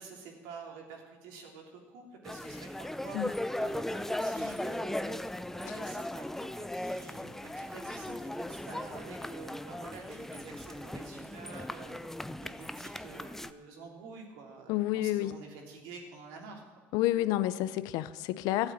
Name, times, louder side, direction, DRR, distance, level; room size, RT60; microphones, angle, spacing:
voice 1, 0.0-5.2 5.6-12.0 12.4-16.6, right 4 dB, 75° right, 1 dB, 3.1 m, -48 dB
sound 1, 2.3-13.5, left 1 dB, 5° left, 0.6 m, -37 dB
voice 2, 14.7-15.4 16.9-18.7, left 15 dB, 70° left, 15 dB, 0.7 m, -30 dB
12.5 x 8.2 x 9.9 m, 1.4 s
hypercardioid pair, 75°, 7 cm